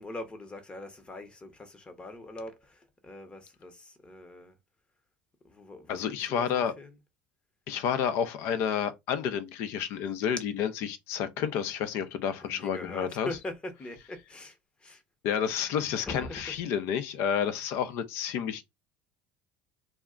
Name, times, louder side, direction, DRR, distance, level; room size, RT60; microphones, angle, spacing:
voice 1, 0.0-4.5 5.4-7.0 12.4-15.0 16.0-16.6, left 1 dB, 20° left, 0.8 m, -42 dB
voice 2, 5.9-6.7 7.7-13.3 15.2-18.6, left 8 dB, 65° left, 0.5 m, -30 dB
2.3 x 2.1 x 3.6 m
supercardioid pair, 95°, 5 cm